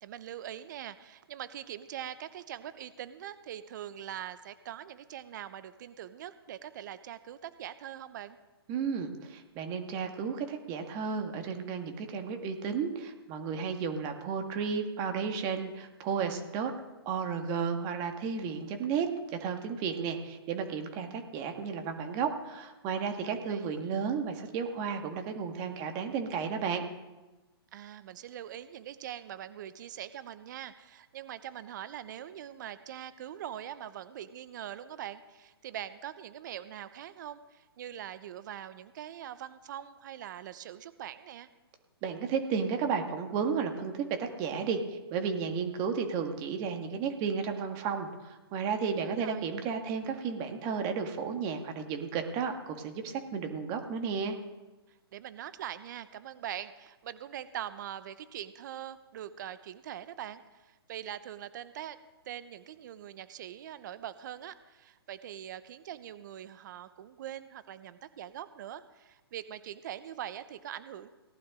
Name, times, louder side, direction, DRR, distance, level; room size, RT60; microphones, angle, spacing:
voice 1, 0.0-8.4 23.3-23.8 27.7-41.5 48.8-49.5 55.1-62.0 62.3-71.1, right 11 dB, 50° right, 13 dB, 0.8 m, -43 dB
voice 2, 8.7-16.7 17.1-26.8 42.0-54.4, right 6 dB, 30° right, 5 dB, 1.8 m, -33 dB
18.5 x 11.5 x 3.8 m, 1.1 s
hypercardioid pair, 140°, 13 cm